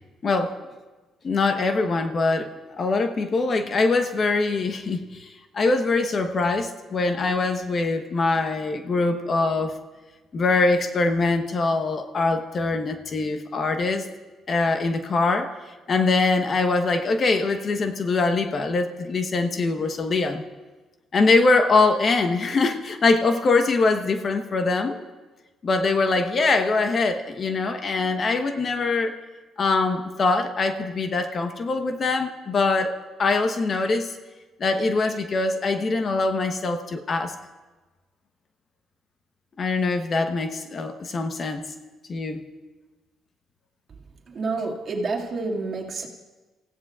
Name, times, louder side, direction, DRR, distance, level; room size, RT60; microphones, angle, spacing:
voice 1, 1.2-2.5 2.8-5.3 5.5-9.7 10.3-14.0 14.5-15.5 15.9-20.4 21.1-25.0 25.6-29.1 29.6-32.9 33.2-34.1 34.6-37.3 39.6-41.6 42.1-42.5, left 3 dB, 45° left, 1.1 m, -23 dB
voice 2, 44.3-46.1, right 3 dB, 50° right, 2.2 m, -28 dB
29.0 x 16.0 x 2.5 m
cardioid pair, 90°, 0 cm